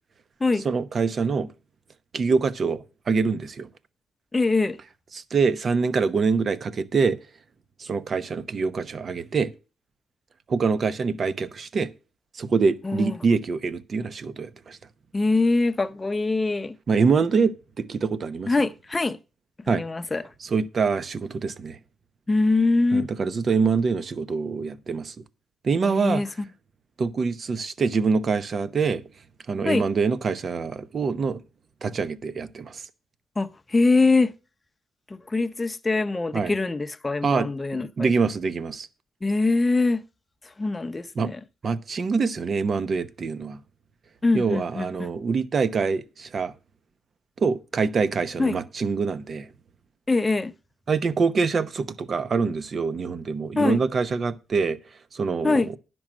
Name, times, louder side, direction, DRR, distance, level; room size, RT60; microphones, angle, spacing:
voice 1, 0.6-1.5 2.1-3.7 5.1-7.2 7.8-9.5 10.5-11.9 12.3-14.8 16.9-18.5 19.7-19.8 20.4-21.8 22.9-25.1 25.6-26.2 27.0-29.0 29.5-31.4 31.8-32.8 36.3-36.5 37.2-38.9 41.2-41.3 41.6-43.6 44.3-46.5 47.4-49.5 50.9-54.8 55.1-55.6, right 5 dB, 50° right, 0.9 m, -25 dB
voice 2, 4.3-4.8 12.8-13.2 15.1-16.8 18.5-19.2 19.7-20.2 22.3-23.1 25.8-26.3 29.6-29.9 33.4-34.3 35.1-38.1 39.2-40.0 40.6-41.4 44.2-45.1 48.4-48.6 50.1-50.5 53.6-53.8 55.4-55.7, left 3 dB, 20° left, 0.7 m, -23 dB
10.5 x 6.2 x 6.2 m
cardioid pair, 90°, 0 cm